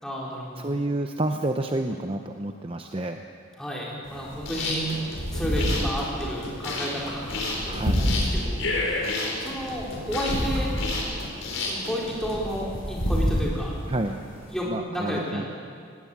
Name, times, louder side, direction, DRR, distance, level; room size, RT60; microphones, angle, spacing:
voice 1, 0.0-0.7 3.6-4.9 5.3-10.7 11.6-13.7 14.5-15.4, equal, 5° left, -4 dB, 4.2 m, -32 dB
voice 2, 0.6-3.2 7.7-8.0 13.9-14.2 14.7-15.5, right 1 dB, 25° right, 5 dB, 0.7 m, -29 dB
sound 1, 4.0-14.6, equal, 45° left, 7.8 m, -30 dB
sound 2, 4.3-12.3, left 3 dB, 75° left, 4.8 m, -30 dB
19.5 x 17.0 x 8.6 m, 2.2 s
head